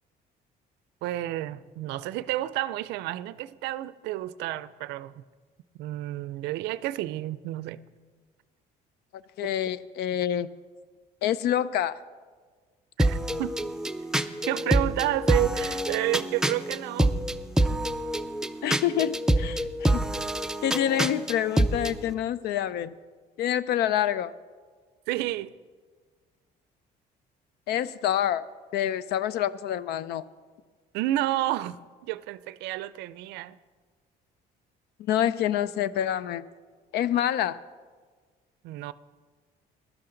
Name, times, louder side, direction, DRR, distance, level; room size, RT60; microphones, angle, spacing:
voice 1, 1.0-5.2 5.8-7.8 13.0-13.5 14.5-17.1 25.1-25.5 30.9-33.6 38.6-38.9, right 15 dB, 90° right, 0.4 m, -30 dB
voice 2, 9.4-10.5 11.2-12.0 18.6-20.0 20.6-22.9 23.4-24.3 27.7-28.4 28.7-30.2 35.1-36.4 36.9-37.6, left 11 dB, 75° left, 0.5 m, -27 dB
sound 1, 13.0-22.0, right 1 dB, 5° right, 0.4 m, -26 dB
15.5 x 12.0 x 3.9 m
cardioid pair, 110°, 17 cm